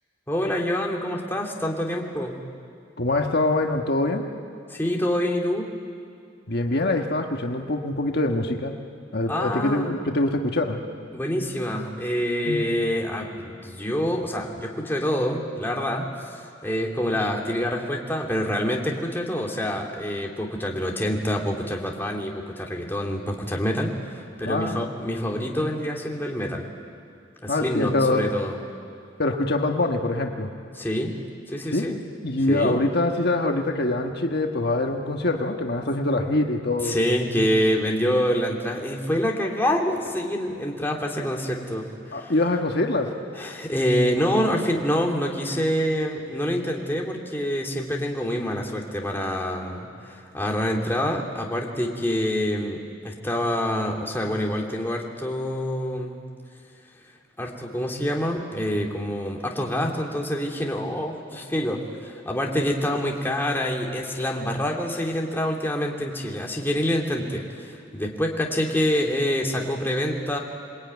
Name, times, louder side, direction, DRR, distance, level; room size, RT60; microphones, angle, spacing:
voice 1, 0.3-2.4 4.7-5.7 9.3-9.9 11.1-26.7 27.4-28.6 30.7-31.2 31.5-32.0 32.5-32.8 36.8-42.3 43.4-56.2 57.4-70.4, equal, 10° left, 0 dB, 2.5 m, -26 dB
voice 2, 3.0-4.3 6.5-8.8 9.1-10.8 12.5-12.6 24.4-24.9 27.5-28.3 29.2-30.5 31.7-37.0 42.1-43.1, left 2 dB, 55° left, 3 dB, 1.4 m, -24 dB
27.0 x 21.0 x 9.5 m, 2.3 s
head